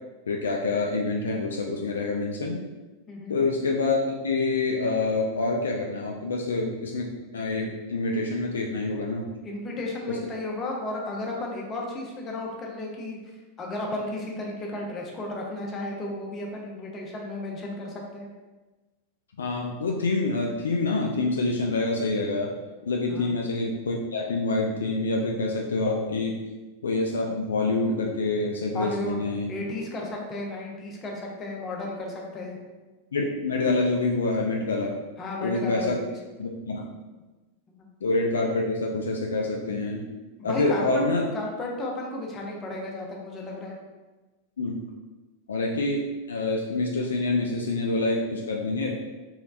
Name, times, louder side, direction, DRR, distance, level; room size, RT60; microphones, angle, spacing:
voice 1, 0.3-2.6 3.3-9.2 10.1-10.2 19.4-22.6 22.8-26.4 26.8-29.5 33.1-35.0 35.4-36.0 36.4-36.9 38.0-40.1 40.4-41.2 44.6-44.8 45.5-49.0, left 3 dB, 65° left, 0 dB, 0.3 m, -26 dB
voice 2, 3.1-3.4 9.4-13.2 13.6-18.3 23.1-23.3 28.7-29.2 29.5-32.6 35.2-36.0 40.4-41.0 41.3-43.8, left 2 dB, 25° left, -1 dB, 0.7 m, -33 dB
3.1 x 3.1 x 2.5 m, 1.2 s
figure-of-eight pair, 90°, 0 cm